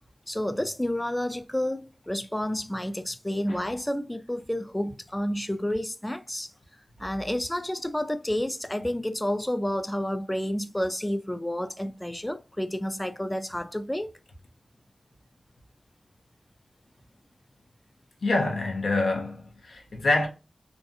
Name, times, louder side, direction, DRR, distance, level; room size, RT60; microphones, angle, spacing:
voice 1, 0.3-6.5 7.0-14.1, left 1 dB, 10° left, 0.3 m, -30 dB
voice 2, 18.2-20.3, left 2 dB, 80° left, 0.7 m, -26 dB
2.6 x 2.3 x 2.5 m
wide cardioid pair, 75°, 0 cm